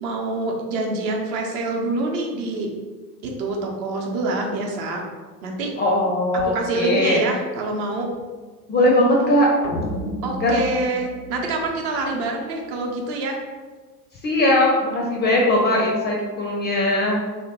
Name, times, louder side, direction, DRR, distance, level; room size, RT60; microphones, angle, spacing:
voice 1, 0.0-2.7 3.2-5.1 5.4-5.7 6.3-8.1 10.2-13.4, right 2 dB, 50° right, 0 dB, 0.7 m, -26 dB
voice 2, 5.8-7.2 8.7-9.5 10.4-10.5 14.2-17.2, left 1 dB, 25° left, -2 dB, 0.4 m, -19 dB
sound 1, 9.6-12.1, equal, 75° left, 0.5 m, -32 dB
2.9 x 2.1 x 2.8 m, 1.4 s
hypercardioid pair, 75°, 46 cm